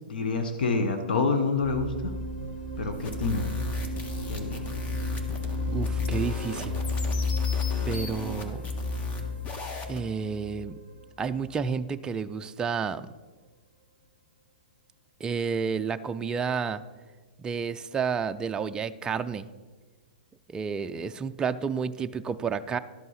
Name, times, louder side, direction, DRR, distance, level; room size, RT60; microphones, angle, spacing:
voice 1, 0.1-2.1 2.8-3.5 4.3-4.6, left 4 dB, 75° left, 6 dB, 1.0 m, -27 dB
sound 1, 1.6-11.4, left 3 dB, 55° left, 2.0 m, -32 dB
sound 2, 2.9-10.0, left 1 dB, 25° left, 1.3 m, -38 dB
voice 2, 5.7-6.8 7.9-8.6 9.9-10.8 11.2-13.1 15.2-16.8 17.4-19.5 20.5-22.8, right 6 dB, 15° right, 9 dB, 0.4 m, -30 dB
12.0 x 5.4 x 5.6 m, 1.4 s
hypercardioid pair, 120°, 5 cm